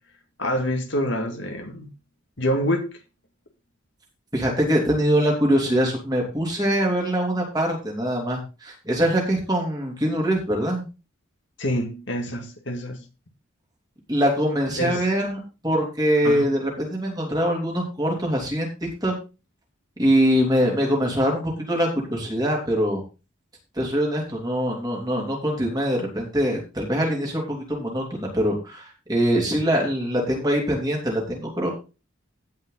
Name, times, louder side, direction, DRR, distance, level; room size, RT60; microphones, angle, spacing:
voice 1, 0.4-1.9 2.4-3.0 11.6-13.0 14.8-15.0 16.2-16.5, equal, 60° left, 2.0 m, -26 dB
voice 2, 4.3-10.9 14.1-18.7 19.0-19.1 20.0-23.0 23.8-31.7, equal, 20° right, 3.2 m, -23 dB
16.0 x 5.6 x 4.0 m
head